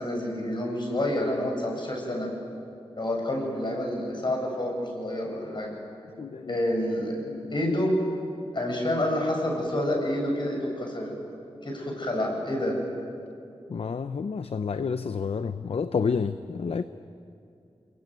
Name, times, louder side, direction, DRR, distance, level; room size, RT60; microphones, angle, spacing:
voice 1, 0.0-2.3 3.0-5.8 6.5-7.2 7.5-7.9 8.5-11.1 11.6-12.8, left 1 dB, 45° left, 1 dB, 8.0 m, -28 dB
voice 2, 6.2-6.6 7.3-7.5 13.7-16.8, left 5 dB, 70° left, 11 dB, 0.7 m, -29 dB
28.5 x 22.0 x 9.6 m, 2.6 s
wide cardioid pair, 85°, 11 cm